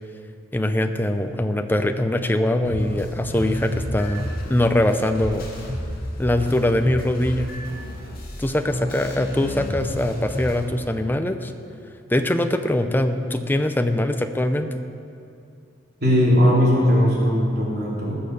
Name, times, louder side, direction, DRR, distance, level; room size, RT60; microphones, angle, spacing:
voice 1, 0.5-5.5 6.2-7.5 8.4-11.5 12.1-14.8, left 1 dB, 10° left, 7 dB, 0.6 m, -22 dB
sound 1, 2.6-10.6, equal, 50° left, 2.4 m, -31 dB
voice 2, 16.0-18.1, equal, 55° right, -5 dB, 3.7 m, -18 dB
19.0 x 6.7 x 6.6 m, 2.5 s
head